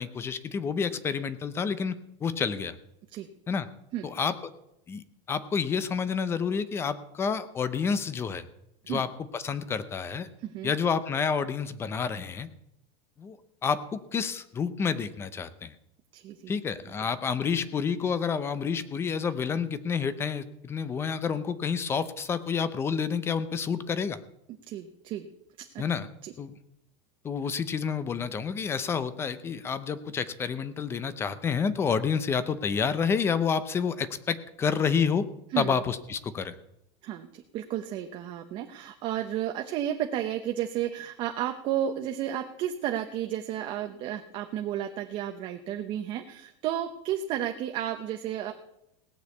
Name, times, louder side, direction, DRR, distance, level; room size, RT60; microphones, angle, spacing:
voice 1, 0.0-2.0 2.2-2.8 3.5-3.7 4.0-4.5 4.9-8.5 8.9-9.1 9.3-10.3 10.6-12.5 13.2-13.4 13.6-15.7 16.5-24.2 25.8-26.1 26.4-26.5 27.2-35.3 35.6-36.6, left 6 dB, 15° left, 14 dB, 0.6 m, -29 dB
voice 2, 10.4-10.7 16.1-16.5 24.7-25.3 25.6-25.8 26.2-26.3 35.5-35.8 37.0-48.5, right 11 dB, 35° right, 5 dB, 0.8 m, -32 dB
17.5 x 6.4 x 8.3 m, 0.82 s
cardioid pair, 170°, 14 cm